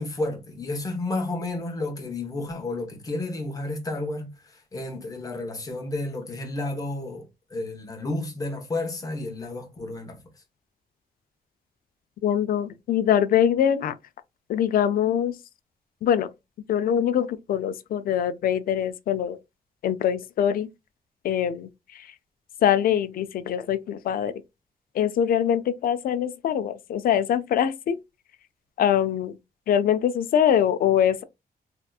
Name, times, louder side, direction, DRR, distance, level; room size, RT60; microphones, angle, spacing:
voice 1, 0.0-10.2, left 2 dB, 20° left, 0.9 m, -31 dB
voice 2, 12.2-13.9 14.5-15.4 16.0-16.3 16.7-19.4 19.8-20.7 21.2-21.7 21.9-22.1 22.6-24.3 24.9-28.0 28.8-29.4 29.7-31.2, left 9 dB, 65° left, 0.4 m, -23 dB
3.4 x 2.8 x 2.3 m
wide cardioid pair, 155°, 16 cm